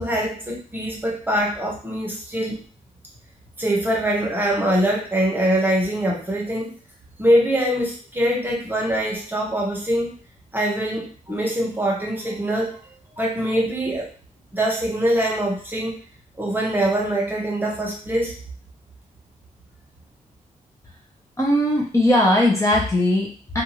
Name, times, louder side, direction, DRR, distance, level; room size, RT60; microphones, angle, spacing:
voice 1, 0.0-2.6 3.6-6.8 7.2-10.2 10.5-12.8 13.2-14.1 14.5-16.0 16.4-18.3, right 1 dB, 15° right, -2 dB, 1.0 m, -23 dB
voice 2, 21.4-23.6, left 1 dB, 20° left, -3 dB, 0.8 m, -19 dB
2.6 x 2.3 x 3.0 m, 0.40 s
cardioid pair, 85°, 14 cm